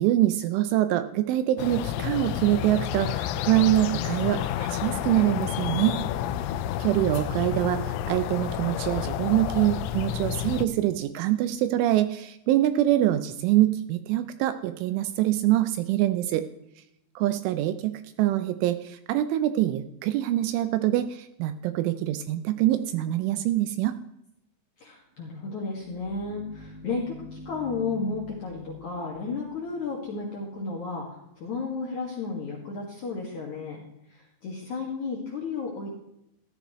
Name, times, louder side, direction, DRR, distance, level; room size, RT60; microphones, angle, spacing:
voice 1, 0.0-6.0 6.8-16.5 17.2-24.0, right 14 dB, 80° right, 10 dB, 2.9 m, -25 dB
sound 1, 1.6-10.7, left 11 dB, 80° left, 3.0 m, -30 dB
voice 2, 24.8-31.1 31.4-33.8 34.1-35.9, left 4 dB, 60° left, -2 dB, 2.1 m, -33 dB
sound 2, 25.1-30.6, left 3 dB, 50° right, 4.8 m, -46 dB
14.0 x 13.5 x 3.1 m, 0.82 s
omnidirectional pair, 5.9 m